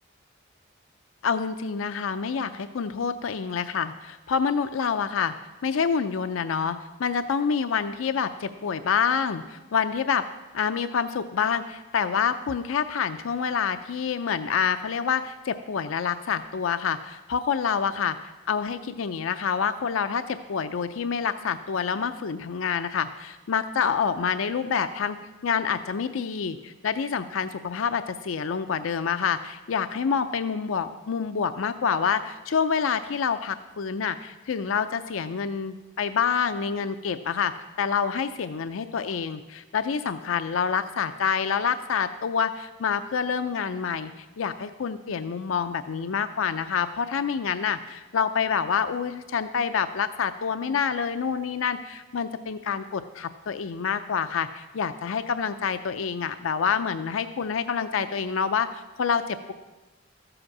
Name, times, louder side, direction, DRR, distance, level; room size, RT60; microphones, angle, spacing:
voice 1, 1.2-5.3 5.6-10.3 10.5-25.2 25.4-59.5, left 6 dB, 80° left, 10 dB, 0.5 m, -27 dB
14.0 x 7.9 x 6.0 m, 1.2 s
head